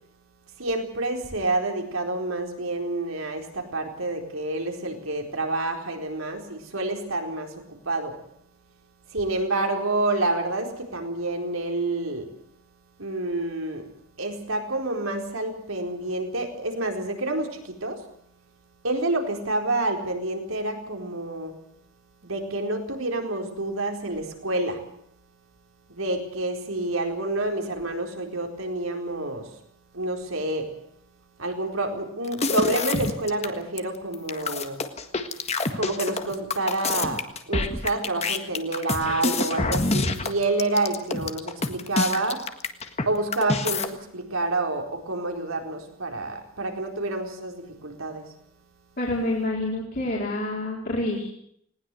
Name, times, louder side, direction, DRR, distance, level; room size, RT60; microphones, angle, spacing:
voice 1, 0.6-8.1 9.1-12.3 13.0-13.9 14.2-18.0 18.8-21.6 22.2-24.8 25.9-29.5 29.9-30.7 31.4-34.8 35.8-42.4 43.1-48.3, right 2 dB, 80° right, 3 dB, 4.4 m, -28 dB
sound 1, 32.3-33.5 33.8-33.9 34.1-43.1 43.3-43.9, left 3 dB, 30° left, 1.7 m, -26 dB
voice 2, 49.0-51.3, left 1 dB, 45° left, -4 dB, 4.3 m, -27 dB
20.0 x 19.0 x 7.7 m, 0.70 s
head